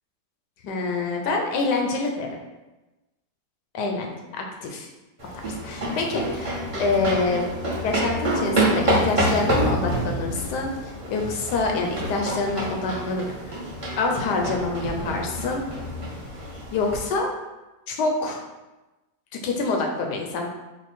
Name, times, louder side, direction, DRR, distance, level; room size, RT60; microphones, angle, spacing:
voice 1, 0.6-2.3 3.7-4.9 5.4-6.5 6.8-7.4 7.8-10.7 11.1-13.5 14.0-15.6 16.7-17.3 17.9-18.4 19.4-20.5, left 3 dB, 75° left, 2 dB, 1.2 m, -26 dB
sound 1, 5.2-17.0, right 1 dB, 25° right, 0.8 m, -27 dB
4.4 x 2.2 x 4.1 m, 1.1 s
omnidirectional pair, 1.9 m